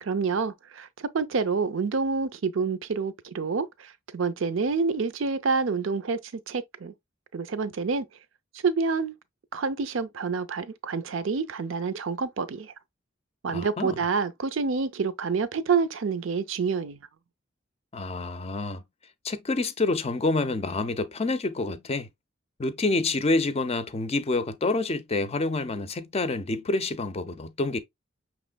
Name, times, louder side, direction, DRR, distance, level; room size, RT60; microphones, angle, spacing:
voice 1, 0.0-6.9 7.3-8.1 8.5-9.1 9.5-12.7 13.4-17.1, right 5 dB, 70° right, 0.5 m, -28 dB
voice 2, 13.5-13.9 17.9-18.8 19.2-22.1 22.6-27.8, left 3 dB, 30° left, 0.5 m, -27 dB
5.8 x 3.1 x 2.2 m
head